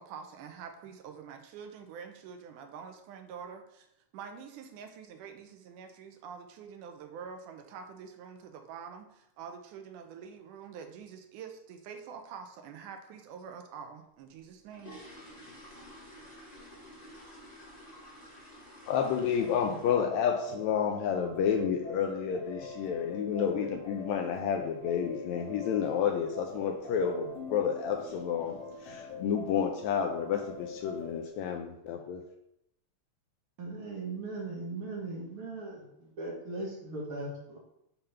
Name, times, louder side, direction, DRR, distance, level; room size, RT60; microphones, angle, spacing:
voice 1, 0.0-3.9 4.1-15.0, right 6 dB, 80° right, 6 dB, 2.2 m, -46 dB
sound 1, 14.3-20.2 20.5-20.8 21.2-21.3 21.6-21.8 22.1-22.4 22.6-22.7 23.3-23.4 23.7-23.8 24.3-24.6 24.9-25.0 25.4-25.6 25.9-26.0 26.5-26.6 27.2-27.5 27.8-28.1 28.5-28.6 29.0-29.1 29.9-30.0 30.4-30.9 31.4-31.5, equal, 15° left, 1.7 m, -51 dB
voice 2, 18.9-32.2, left 7 dB, 80° left, 4 dB, 1.7 m, -30 dB
sound 2, 19.4-31.3, left 3 dB, 60° left, 2.2 m, -44 dB
voice 3, 33.6-37.6, right 2 dB, 50° right, -2 dB, 1.7 m, -39 dB
6.8 x 3.7 x 5.6 m, 0.81 s
omnidirectional pair, 3.6 m